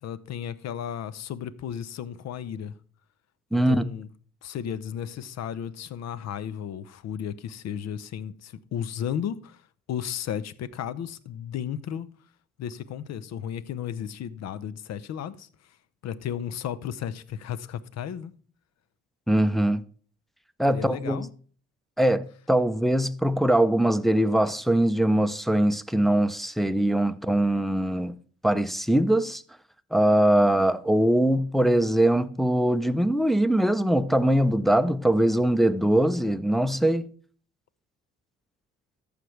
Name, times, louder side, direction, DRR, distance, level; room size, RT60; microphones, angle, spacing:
voice 1, 0.0-2.8 3.5-4.1 4.4-9.6 9.9-12.1 12.6-15.5 16.0-18.3 20.7-21.3, left 9 dB, 60° left, 0.7 m, -34 dB
voice 2, 3.5-3.8 19.3-19.8 20.6-21.3 22.0-28.2 28.4-29.4 29.9-37.1, right 1 dB, ahead, 0.6 m, -22 dB
14.5 x 5.1 x 3.2 m
supercardioid pair, 55°, 29 cm